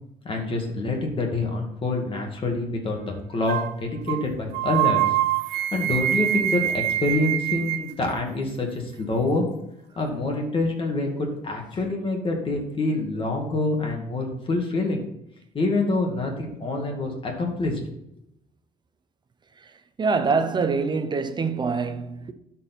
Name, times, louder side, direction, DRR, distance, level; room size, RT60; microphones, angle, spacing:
voice 1, 0.2-5.0 5.5-9.5 10.0-15.0 15.5-17.8, left 2 dB, 30° left, 2.2 m, -26 dB
sound 1, 3.5-3.7 4.1-4.2 4.5-7.9, right 12 dB, 80° right, 0.5 m, -24 dB
voice 2, 20.0-22.3, right 4 dB, 25° right, 0.7 m, -25 dB
12.5 x 4.5 x 4.5 m
cardioid pair, 110°, 17 cm